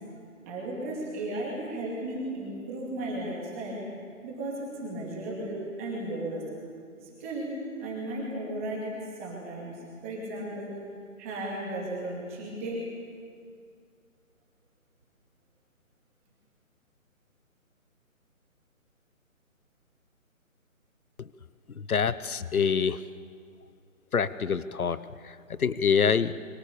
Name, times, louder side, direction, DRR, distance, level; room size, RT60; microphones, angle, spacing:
voice 1, 0.5-3.8 4.2-6.5 7.0-7.6 7.8-9.8 10.0-10.8 11.2-12.9, right 1 dB, 10° right, -4 dB, 2.3 m, -35 dB
voice 2, 21.9-23.0 24.1-25.0 25.6-26.3, left 6 dB, 90° left, 15 dB, 1.1 m, -25 dB
29.0 x 23.5 x 6.8 m, 2.2 s
hypercardioid pair, 175°, 42 cm